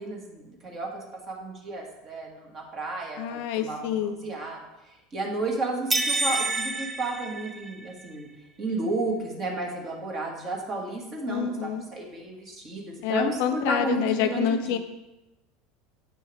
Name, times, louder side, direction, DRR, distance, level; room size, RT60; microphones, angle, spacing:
voice 1, 0.0-4.6 5.1-8.3 8.6-14.8, right 2 dB, 35° right, 0 dB, 1.7 m, -32 dB
voice 2, 3.2-4.2 11.3-11.8 13.0-14.8, left 9 dB, 60° left, 8 dB, 0.5 m, -27 dB
sound 1, 5.9-8.0, right 2 dB, 15° right, 0.6 m, -28 dB
8.3 x 5.4 x 3.4 m, 0.97 s
figure-of-eight pair, 75°, 0 cm